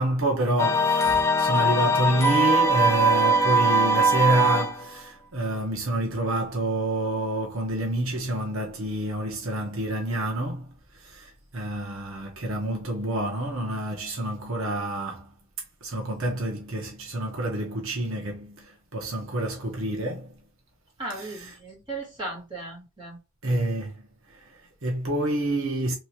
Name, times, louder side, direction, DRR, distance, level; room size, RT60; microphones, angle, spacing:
voice 1, 0.0-15.3 15.8-20.4 21.2-21.5 23.4-24.0 24.3-26.0, right 1 dB, 75° right, 1.0 m, -28 dB
sound 1, 0.6-4.9, right 1 dB, 15° left, 0.5 m, -21 dB
voice 2, 21.0-23.2, right 2 dB, 20° right, 2.2 m, -36 dB
3.3 x 3.1 x 2.9 m
head